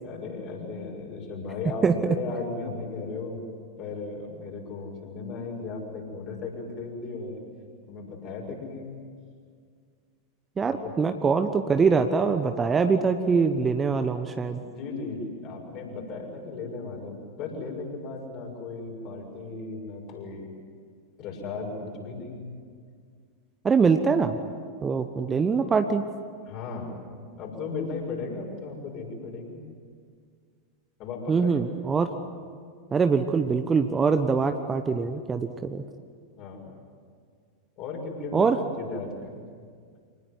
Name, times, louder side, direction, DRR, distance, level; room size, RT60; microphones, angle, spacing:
voice 1, 0.0-3.4 3.8-7.4 7.9-8.9 10.8-10.9 11.2-11.3 14.5-20.5 21.2-22.5 26.5-27.0 27.4-29.6 31.0-31.9 36.4-36.7 37.8-39.4, left 4 dB, 40° left, 1 dB, 6.5 m, -36 dB
voice 2, 1.8-2.1 10.6-14.6 23.6-24.4 24.8-26.0 31.3-32.1 32.9-35.8 38.3-38.6, right 5 dB, 20° right, 8 dB, 1.2 m, -23 dB
26.0 x 19.5 x 9.7 m, 2.1 s
figure-of-eight pair, 90°, 0 cm